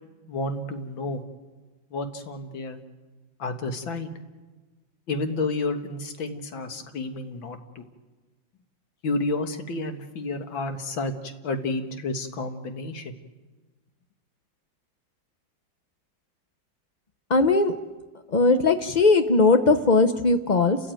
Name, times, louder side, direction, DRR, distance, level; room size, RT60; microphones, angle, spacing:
voice 1, 0.3-1.2 1.9-2.8 3.4-4.1 5.1-7.8 9.0-13.1, left 2 dB, 85° left, 6 dB, 2.4 m, -30 dB
voice 2, 17.3-17.7 18.3-20.8, left 3 dB, 60° left, 8 dB, 0.4 m, -19 dB
30.0 x 14.0 x 9.1 m, 1.3 s
omnidirectional pair, 2.1 m